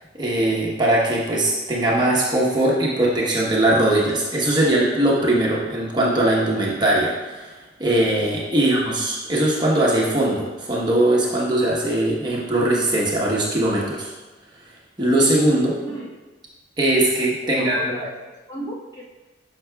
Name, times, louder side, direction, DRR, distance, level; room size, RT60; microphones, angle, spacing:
voice 1, 0.2-14.1 15.0-15.7 16.8-18.0, right 1 dB, 25° right, -5 dB, 1.0 m, -20 dB
voice 2, 17.4-18.1 18.5-19.0, right 1 dB, 25° left, -5 dB, 1.4 m, -32 dB
11.0 x 5.9 x 2.3 m, 1.2 s
head